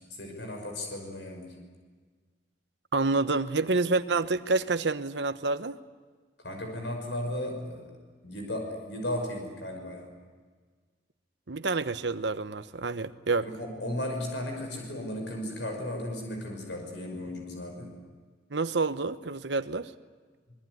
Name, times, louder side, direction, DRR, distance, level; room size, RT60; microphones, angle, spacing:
voice 1, 0.1-1.6 6.4-8.0 8.2-10.1 13.4-18.0, left 1 dB, 90° left, 2 dB, 5.7 m, -35 dB
voice 2, 2.9-5.8 11.5-13.5 18.5-19.9, right 3 dB, 80° right, 11 dB, 1.1 m, -28 dB
24.5 x 22.5 x 9.6 m, 1.5 s
head